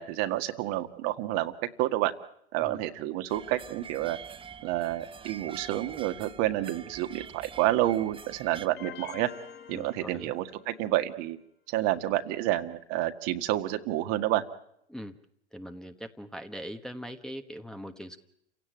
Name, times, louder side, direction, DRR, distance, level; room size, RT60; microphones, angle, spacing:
voice 1, 0.0-1.5 1.8-2.1 2.5-4.2 4.6-9.3 9.7-11.4 11.7-14.4, right 15 dB, 45° right, 7 dB, 1.8 m, -29 dB
sound 1, 3.3-8.7, right 6 dB, 15° right, 1.0 m, -46 dB
sound 2, 8.8-10.9, left 9 dB, 30° left, 1.4 m, -46 dB
voice 2, 9.7-10.3 14.9-15.1 15.5-18.2, equal, ahead, 5 dB, 1.3 m, -41 dB
29.0 x 17.0 x 9.2 m, 0.75 s
hypercardioid pair, 95°, 34 cm